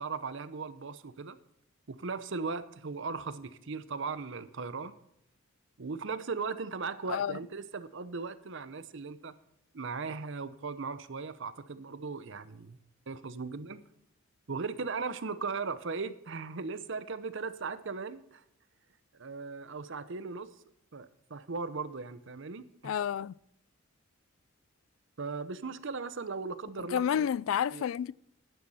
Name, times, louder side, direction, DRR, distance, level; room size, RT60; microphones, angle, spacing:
voice 1, 0.0-1.4 1.9-4.9 5.8-9.3 9.7-12.8 13.1-13.8 14.5-18.4 19.1-20.5 20.9-22.9 25.2-27.3 27.7-27.8, right 4 dB, 60° right, 0.7 m, -38 dB
voice 2, 22.8-23.3 26.8-28.1, left 8 dB, 75° left, 0.3 m, -30 dB
11.5 x 9.3 x 4.2 m
head